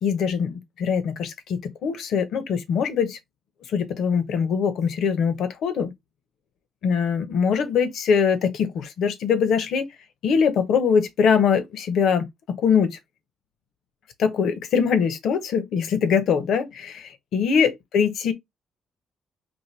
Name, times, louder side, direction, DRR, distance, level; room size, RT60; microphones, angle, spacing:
voice 1, 0.0-3.2 3.7-5.9 6.8-9.9 10.2-12.3 12.6-13.0 14.2-18.3, left 6 dB, 75° left, 0.9 m, -22 dB
4.4 x 2.6 x 3.2 m
cardioid pair, 90°, 0 cm